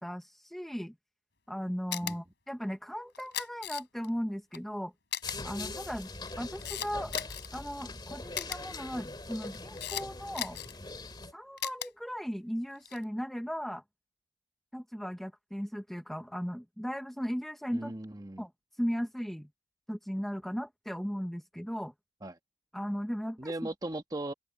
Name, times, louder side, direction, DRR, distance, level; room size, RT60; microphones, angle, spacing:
voice 1, 0.0-0.9 1.5-4.9 5.4-6.1 6.4-7.1 7.5-10.6 11.3-13.8 14.7-17.9 18.4-18.5 18.8-19.5 19.9-21.9 22.7-23.7, equal, ahead, 0.7 m, -37 dB
Camera, 1.9-2.1 3.1-4.1 4.5-4.6 5.1-5.4 6.1-7.5 8.3-8.6 9.3-10.0 10.3-10.8 11.6-11.9 12.8-13.0, left 10 dB, 60° left, 3.3 m, -36 dB
sound 1, 5.2-11.3, left 2 dB, 25° left, 2.2 m, -42 dB
voice 2, 17.7-18.5 22.2-22.3 23.4-24.3, right 1 dB, 20° right, 1.2 m, -38 dB
open air
head